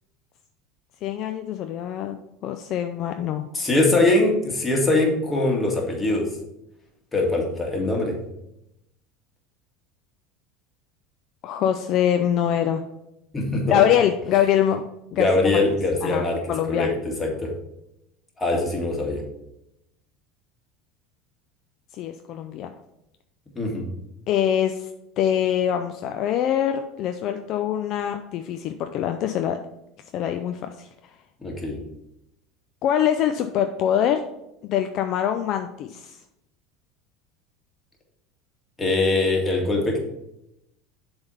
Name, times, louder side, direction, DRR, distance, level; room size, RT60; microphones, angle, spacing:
voice 1, 1.0-2.2 2.4-3.4 11.4-12.8 13.7-14.8 15.1-15.3 15.5-15.6 16.0-16.9 21.9-22.7 24.3-24.9 25.2-29.6 30.1-30.9 32.8-34.2 34.6-36.2, left 10 dB, 55° left, 7 dB, 0.4 m, -24 dB
voice 2, 3.5-6.3 7.1-8.2 13.3-13.8 15.1-16.4 16.7-16.9 17.2-17.5 18.4-19.2 23.6-23.9 31.4-31.8 38.8-40.0, left 2 dB, 20° left, 0 dB, 2.0 m, -22 dB
7.1 x 3.5 x 5.6 m, 0.84 s
supercardioid pair, 95°, 0 cm